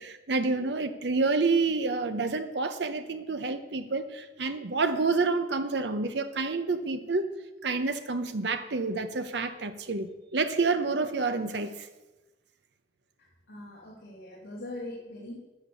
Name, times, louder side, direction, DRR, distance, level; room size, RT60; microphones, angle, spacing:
voice 1, 0.0-7.3 7.6-11.9, right 3 dB, 70° right, 9 dB, 0.8 m, -28 dB
voice 2, 13.2-15.4, left 1 dB, 75° left, -5 dB, 2.6 m, -42 dB
13.0 x 6.7 x 6.7 m, 1.1 s
head